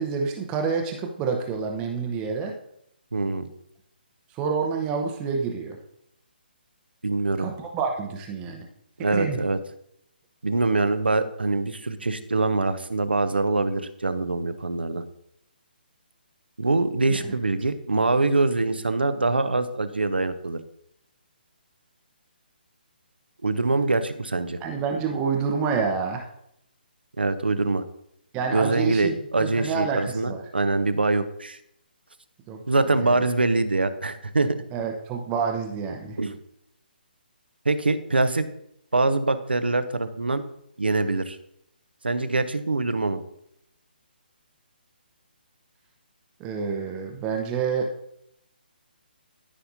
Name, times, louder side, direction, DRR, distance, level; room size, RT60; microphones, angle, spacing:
voice 1, 0.0-2.5 4.3-5.8 7.4-8.7 9.1-9.4 17.1-17.3 24.6-26.2 28.3-30.4 32.5-32.6 33.0-33.1 34.7-36.2 46.4-47.9, right 5 dB, 15° right, 2 dB, 0.8 m, -28 dB
voice 2, 3.1-3.5 7.0-7.5 9.0-9.6 10.4-15.0 16.6-20.6 23.4-24.6 27.2-27.8 28.5-31.6 32.7-34.5 36.2-36.4 37.6-38.5 38.9-40.4 40.8-41.4 42.0-43.2, right 3 dB, 75° right, 11 dB, 0.8 m, -24 dB
13.5 x 5.6 x 2.7 m, 0.73 s
figure-of-eight pair, 140°, 6 cm